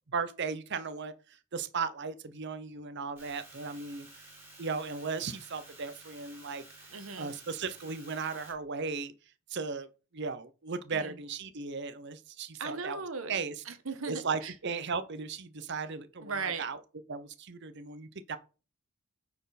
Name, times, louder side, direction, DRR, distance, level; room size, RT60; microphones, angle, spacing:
voice 1, 0.1-1.1 1.5-4.1 4.6-6.6 7.2-9.1 9.5-9.9 10.1-13.0 13.3-13.5 14.1-16.8 17.1-18.4, right 5 dB, 55° right, 0.7 m, -36 dB
sound 1, 3.2-8.5, right 2 dB, 10° right, 2.9 m, -53 dB
voice 2, 6.9-7.3 10.9-11.2 12.6-13.4 13.6-14.5 16.2-16.7, right 4 dB, 70° right, 1.2 m, -37 dB
9.1 x 4.4 x 4.1 m
head